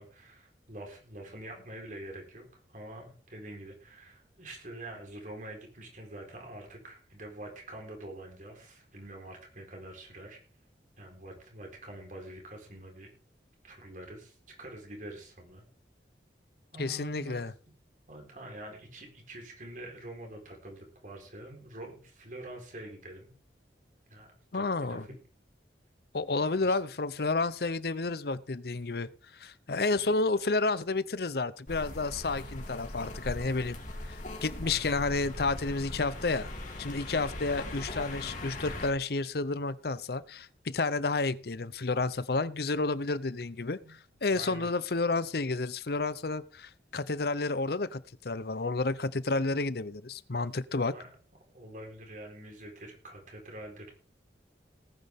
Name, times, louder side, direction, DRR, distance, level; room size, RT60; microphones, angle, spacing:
voice 1, 0.0-10.4 11.0-13.1 13.6-15.7 16.7-17.5 18.1-23.3 24.1-25.2 26.4-26.8 30.0-30.1 32.3-32.5 33.4-33.7 34.6-34.9 43.8-43.9 44.3-44.7 50.8-51.1 51.5-53.9, right 1 dB, 45° right, 2 dB, 4.2 m, -46 dB
voice 2, 16.8-17.5 24.5-25.1 26.1-33.8 34.1-36.5 36.8-50.9, left 3 dB, 60° left, 17 dB, 0.7 m, -31 dB
sound 1, 31.7-38.9, left 1 dB, 45° left, 3.0 m, -40 dB
18.5 x 9.6 x 3.6 m, 0.38 s
head